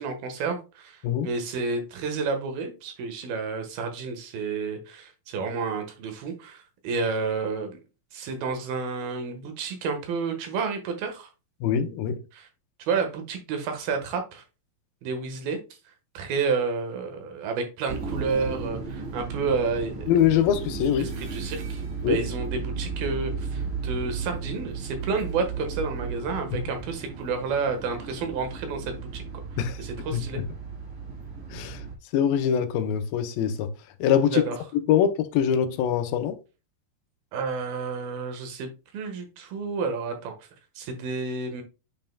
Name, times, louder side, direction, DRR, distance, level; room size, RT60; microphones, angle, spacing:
voice 1, 0.0-7.8 8.1-11.3 12.3-12.5 12.9-14.4 15.0-15.6 16.1-20.1 21.0-21.8 22.1-29.3 29.5-30.4 34.3-34.6 37.3-40.3 40.8-41.6, right 4 dB, 90° right, 3.3 m, -30 dB
voice 2, 11.6-12.2 20.1-21.1 22.0-22.2 26.5-26.6 29.6-29.8 30.1-30.5 31.5-31.8 32.1-33.7 34.0-34.4 34.9-36.4, left 9 dB, 85° left, 2.5 m, -23 dB
sound 1, 17.9-31.9, right 5 dB, 55° right, 3.7 m, -35 dB
8.7 x 5.4 x 2.3 m
omnidirectional pair, 4.2 m